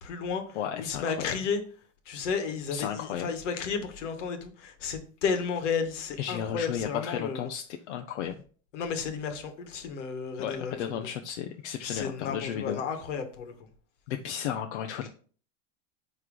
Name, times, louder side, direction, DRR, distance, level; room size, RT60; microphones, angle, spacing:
voice 1, 0.0-1.6 2.0-7.5 8.7-10.8 11.8-13.7, left 6 dB, 85° left, 7 dB, 1.5 m, -33 dB
voice 2, 0.6-1.4 2.7-3.3 6.2-8.3 10.4-12.8 14.1-15.1, left 9 dB, 70° left, 5 dB, 0.7 m, -34 dB
9.6 x 3.2 x 3.7 m, 0.42 s
supercardioid pair, 180°, 36 cm